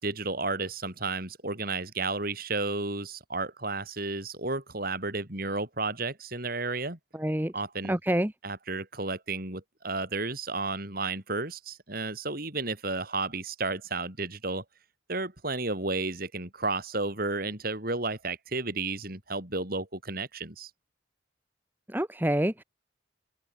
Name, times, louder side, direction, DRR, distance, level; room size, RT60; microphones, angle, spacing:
voice 1, 0.0-7.0 7.5-8.0 8.4-14.6 15.1-20.7, right 3 dB, 50° right, 4.7 m, -32 dB
voice 2, 7.1-7.5 7.9-8.3 21.9-22.6, right 1 dB, 10° right, 1.1 m, -27 dB
open air
head